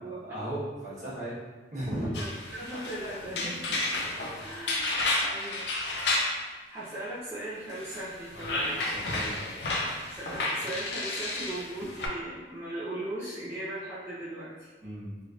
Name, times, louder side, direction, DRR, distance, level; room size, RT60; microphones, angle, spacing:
voice 1, 0.0-1.3 1.7-2.1 3.3-3.8 4.3-4.5 8.9-9.5 14.8-15.1, right 1 dB, 45° right, -9 dB, 1.2 m, -37 dB
sound 1, 2.1-6.4 7.7-12.1, left 2 dB, 70° left, 0.5 m, -31 dB
voice 2, 2.5-4.0 4.4-5.7 6.7-8.9 10.1-14.7, right 1 dB, 15° right, -12 dB, 0.6 m, -38 dB
3.2 x 3.0 x 2.4 m, 1.3 s
head